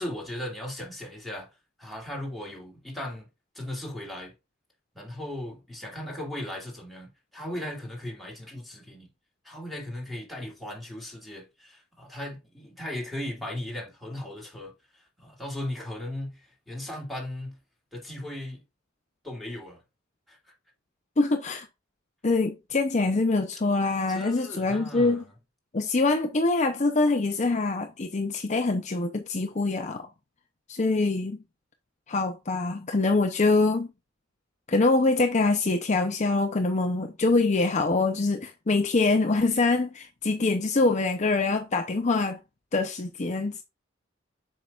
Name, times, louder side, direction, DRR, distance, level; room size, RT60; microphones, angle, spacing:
voice 1, 0.0-1.5 1.8-3.3 3.5-4.3 4.9-9.1 9.4-17.6 17.9-18.6 19.2-19.8 20.3-20.4 24.1-25.2, left 1 dB, ahead, 2.7 m, -37 dB
voice 2, 21.2-21.7 22.2-25.2 25.7-30.1 30.7-31.4 32.1-33.9 34.7-42.4 42.7-43.6, left 3 dB, 35° left, 0.6 m, -24 dB
7.4 x 5.7 x 2.4 m
head